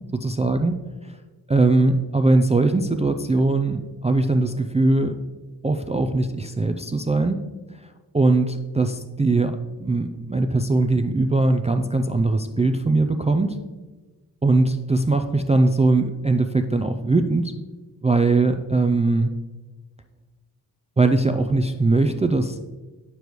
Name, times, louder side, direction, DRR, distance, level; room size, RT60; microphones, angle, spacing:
voice 1, 0.1-0.8 1.1-1.2 1.5-5.2 5.6-7.4 8.1-13.6 14.4-17.5 18.0-19.3 21.0-22.6, right 2 dB, 20° right, 6 dB, 0.3 m, -20 dB
8.1 x 6.9 x 3.1 m, 1.3 s
wide cardioid pair, 100°, 41 cm